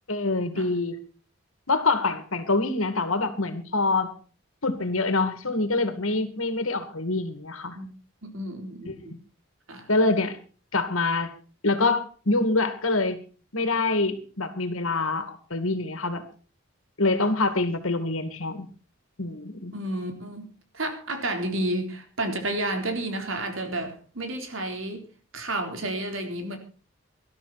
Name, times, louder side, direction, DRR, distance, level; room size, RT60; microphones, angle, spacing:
voice 1, 0.1-1.0 1.7-4.1 4.6-7.8 8.9-9.0 9.9-10.4 10.7-11.3 11.6-13.2 13.5-16.3 17.0-18.7 19.2-19.7, left 3 dB, 80° left, 10 dB, 2.4 m, -25 dB
voice 2, 8.2-9.0 9.7-9.9 19.7-20.5 20.7-25.1 25.3-26.6, right 1 dB, 75° right, 5 dB, 3.9 m, -31 dB
19.0 x 12.5 x 4.3 m, 0.37 s
head